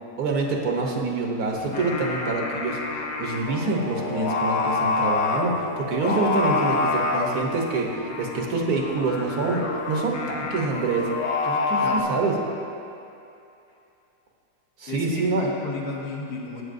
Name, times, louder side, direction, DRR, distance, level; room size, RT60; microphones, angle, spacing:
voice 1, 0.2-11.1 11.4-12.3 14.8-15.5, right 3 dB, 65° right, 0 dB, 1.5 m, -26 dB
Singing, 1.5-12.0, left 3 dB, 55° left, 0.9 m, -27 dB
voice 2, 11.8-12.1 14.9-16.6, left 3 dB, 70° left, -3 dB, 1.8 m, -33 dB
14.5 x 8.5 x 2.6 m, 2.7 s
omnidirectional pair, 1.8 m